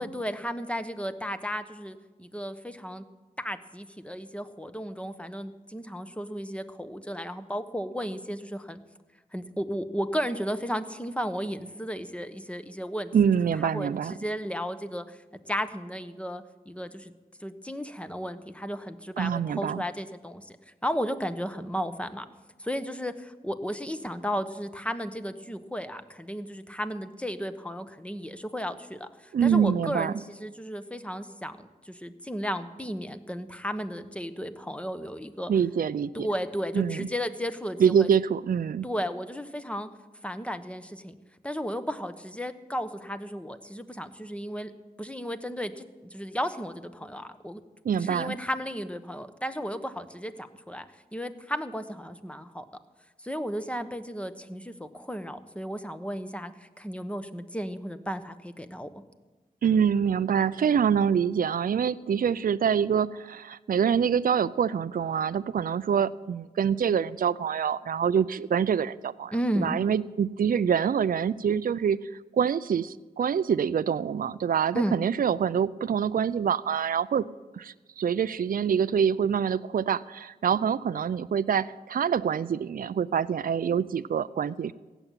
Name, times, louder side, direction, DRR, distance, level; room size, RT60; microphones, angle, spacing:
voice 1, 0.0-3.0 3.4-8.8 9.3-13.1 13.7-15.2 15.5-17.1 17.4-20.6 20.8-22.2 22.6-35.5 36.1-38.1 38.8-39.9 40.2-41.1 41.4-44.7 45.0-47.6 48.0-50.9 51.1-52.6 53.2-58.9 69.3-69.8 74.7-75.0, equal, 5° left, 10 dB, 1.1 m, -34 dB
voice 2, 13.1-14.1 19.2-19.8 29.3-30.1 35.5-36.3 36.7-37.1 37.8-38.9 47.8-48.3 59.6-69.3 69.6-72.0 72.3-77.2 77.5-84.7, right 7 dB, 60° right, 15 dB, 0.4 m, -25 dB
16.0 x 7.1 x 9.1 m, 1.2 s
cardioid pair, 45°, 16 cm